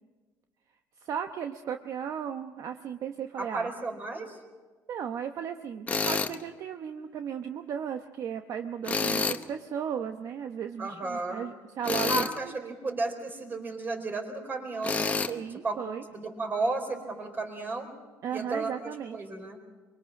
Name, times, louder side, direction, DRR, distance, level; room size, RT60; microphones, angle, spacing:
voice 1, 1.0-3.7 4.9-12.3 12.6-12.7 15.3-16.0 18.2-19.2, right 8 dB, 50° right, 7 dB, 0.9 m, -35 dB
voice 2, 3.4-4.4 10.8-11.4 12.1-15.3 15.6-15.8 16.1-17.9 18.3-19.6, right 3 dB, 30° right, 4 dB, 4.4 m, -33 dB
Tools, 5.9-6.4 8.8-9.4 11.8-12.4 14.8-15.3, left 4 dB, 20° left, 0.9 m, -28 dB
24.0 x 23.0 x 6.0 m, 1.3 s
cardioid pair, 125°, 7 cm